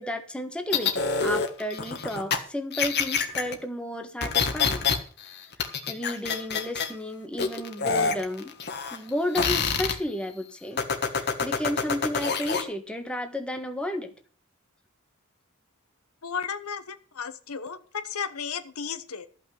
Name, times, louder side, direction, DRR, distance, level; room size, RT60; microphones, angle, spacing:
voice 1, 0.0-4.9 5.9-8.5 8.9-10.8 11.2-14.1, left 1 dB, 5° left, 5 dB, 1.4 m, -32 dB
sound 1, 0.7-2.4 2.7-3.5 4.2-5.0 5.2-6.9 7.4-9.1 9.3-9.9 10.8-12.6, left 5 dB, 50° left, 1.5 m, -26 dB
voice 2, 16.2-19.3, left 6 dB, 70° left, 11 dB, 0.9 m, -34 dB
13.5 x 5.9 x 8.0 m, 0.43 s
head